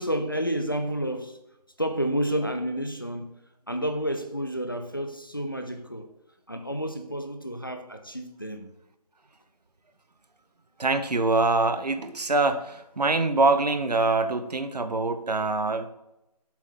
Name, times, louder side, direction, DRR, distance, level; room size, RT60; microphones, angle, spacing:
voice 1, 0.0-1.4 1.8-3.4 3.7-6.1 6.5-8.7, equal, 35° left, 6 dB, 0.5 m, -30 dB
voice 2, 10.8-15.9, right 3 dB, 75° right, 9 dB, 0.9 m, -24 dB
7.3 x 3.5 x 5.5 m, 0.89 s
figure-of-eight pair, 180°, 21 cm